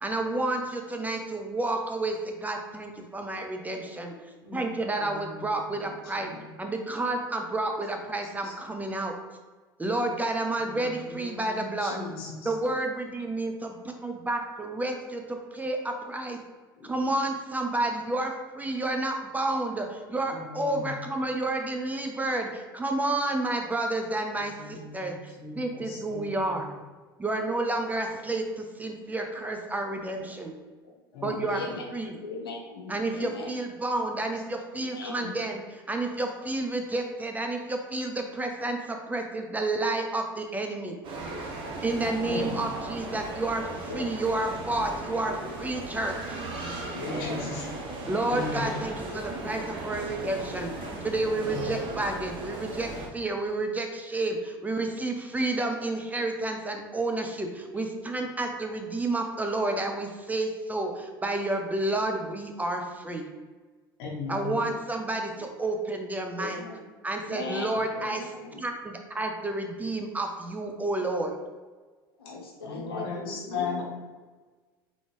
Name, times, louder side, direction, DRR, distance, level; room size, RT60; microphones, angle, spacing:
voice 1, 0.0-4.1 4.5-6.3 6.6-9.1 9.8-12.0 12.5-16.4 16.8-26.7 27.2-30.5 31.2-31.6 31.9-32.1 32.9-40.9 41.8-46.4 48.1-50.7 51.0-63.3 64.3-66.6 67.0-68.3 68.6-71.4, right 2 dB, 15° right, 3 dB, 0.6 m, -30 dB
voice 2, 4.9-6.4 7.9-8.0 8.4-8.5 10.5-12.5 16.7-17.1 20.2-21.0 24.4-26.8 31.1-31.8 42.2-42.5 47.0-48.8 51.4-51.7 64.0-64.7 67.7-67.8 68.4-68.5 72.6-73.8, left 4 dB, 65° left, -3 dB, 1.4 m, -38 dB
voice 3, 31.2-33.5 34.8-35.3 43.9-44.1 47.0-47.4 66.4-66.9 67.2-68.6 72.2-73.8, left 3 dB, 85° left, -1 dB, 0.7 m, -38 dB
sound 1, 41.0-53.1, right 2 dB, 45° right, 1.1 m, -37 dB
3.8 x 3.6 x 3.2 m, 1.4 s
hypercardioid pair, 75°, 12 cm